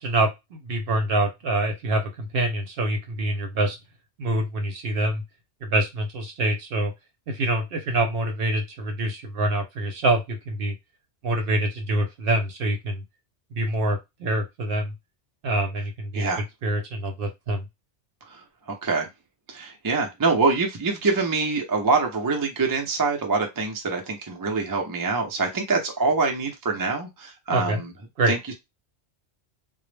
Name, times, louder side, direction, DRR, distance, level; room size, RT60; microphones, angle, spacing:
voice 1, 0.0-3.8 4.2-5.2 5.6-6.9 7.3-10.7 11.2-13.0 13.5-14.9 15.4-16.3 16.6-17.6 27.5-27.8 28.2-28.3, right 1 dB, 60° right, 4 dB, 0.8 m, -25 dB
voice 2, 18.3-19.1 19.5-27.9 28.3-28.5, right 4 dB, 35° right, 2 dB, 0.3 m, -25 dB
2.1 x 2.0 x 3.1 m, 0.21 s
omnidirectional pair, 1.2 m